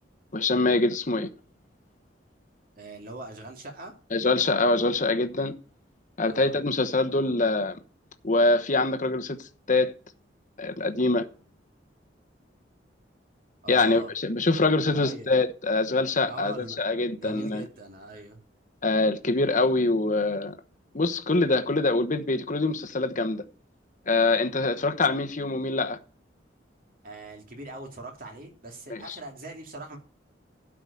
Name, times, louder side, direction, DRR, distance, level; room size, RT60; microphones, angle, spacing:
voice 1, 0.3-1.3 4.1-5.5 6.2-7.8 8.2-9.9 10.6-11.2 13.7-17.6 18.8-20.5 20.9-23.4 24.1-26.0 28.9-29.0, left 3 dB, 45° left, 1.1 m, -24 dB
voice 2, 2.8-4.0 6.2-6.5 13.6-14.1 14.9-15.4 16.3-16.8 17.1-18.4 27.0-30.0, right 2 dB, 50° right, 2.6 m, -41 dB
12.5 x 5.0 x 8.2 m
head